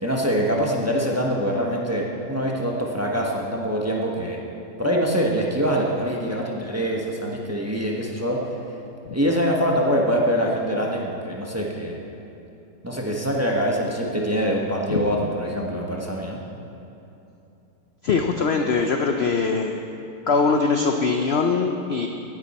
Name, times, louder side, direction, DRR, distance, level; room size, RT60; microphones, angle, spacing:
voice 1, 0.0-4.4 4.8-8.4 9.1-12.0 12.8-16.4, equal, 10° right, -1 dB, 0.8 m, -24 dB
voice 2, 18.0-19.8 20.3-22.1, left 4 dB, 65° left, 4 dB, 0.6 m, -22 dB
16.5 x 9.6 x 4.2 m, 2.8 s
omnidirectional pair, 1.9 m